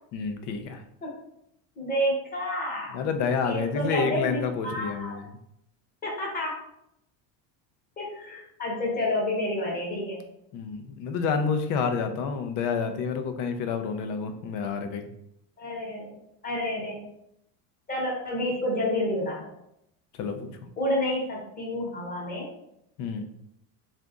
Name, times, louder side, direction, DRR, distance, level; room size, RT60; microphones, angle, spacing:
voice 1, 0.1-0.8 2.9-5.2 10.5-15.1 20.1-20.5 23.0-23.3, left 5 dB, 45° left, 8 dB, 0.5 m, -29 dB
voice 2, 1.8-3.0 3.4-5.2 6.0-6.6 8.0-10.2 14.5-14.7 15.6-16.1 16.4-17.0 17.9-19.5 20.8-22.5, left 1 dB, 20° left, -3 dB, 1.0 m, -29 dB
3.9 x 2.5 x 3.5 m, 0.78 s
cardioid pair, 155°, 46 cm